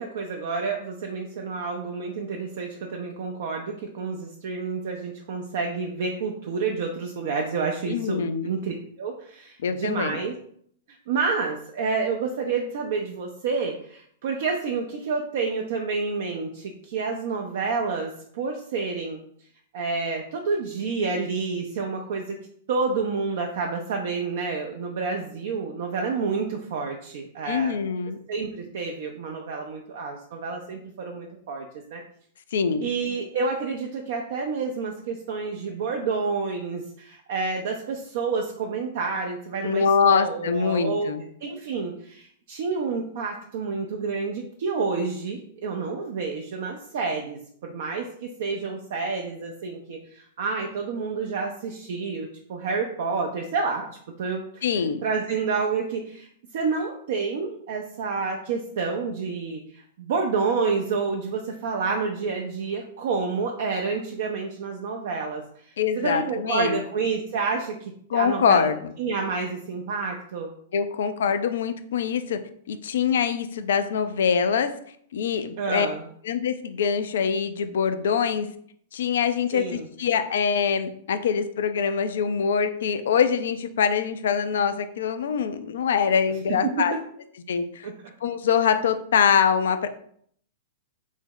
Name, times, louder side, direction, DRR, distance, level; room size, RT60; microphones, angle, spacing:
voice 1, 0.0-10.3 10.9-19.2 19.7-22.4 22.7-27.8 28.3-31.7 31.9-32.0 32.8-41.1 41.4-53.9 54.2-54.6 55.0-56.3 56.5-68.7 69.0-70.5 75.6-76.1 79.5-79.9 87.8-87.9, right 4 dB, 60° right, 2 dB, 0.4 m, -29 dB
voice 2, 7.9-8.5 9.6-10.2 27.5-28.2 32.5-32.9 39.6-41.2 54.6-55.0 65.8-66.8 68.1-68.9 70.7-72.4 72.7-74.7 75.1-75.9 76.2-78.5 78.9-86.9 87.5-87.9 88.2-89.9, left 7 dB, 70° left, 10 dB, 0.3 m, -24 dB
3.4 x 2.0 x 3.7 m, 0.63 s
hypercardioid pair, 110°, 0 cm